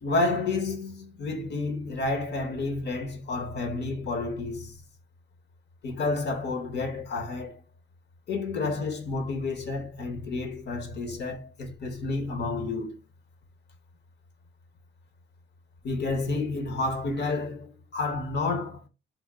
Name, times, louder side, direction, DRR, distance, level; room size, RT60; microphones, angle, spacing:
voice 1, 0.0-4.9 5.8-7.6 8.3-13.0 15.8-18.9, left 3 dB, 60° left, 1.0 m, -30 dB
3.5 x 2.1 x 3.6 m
cardioid pair, 90°, 20 cm